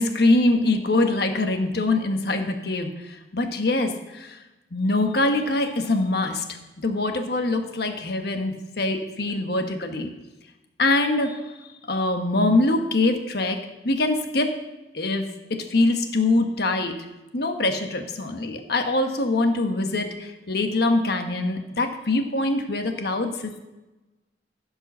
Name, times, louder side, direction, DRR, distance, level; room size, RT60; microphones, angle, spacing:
voice 1, 0.0-4.4 4.7-10.1 10.8-11.5 11.9-13.6 13.8-14.6 14.9-16.9 17.3-23.6, left 2 dB, 60° left, 5 dB, 1.3 m, -23 dB
15.0 x 5.5 x 6.2 m, 1.1 s
head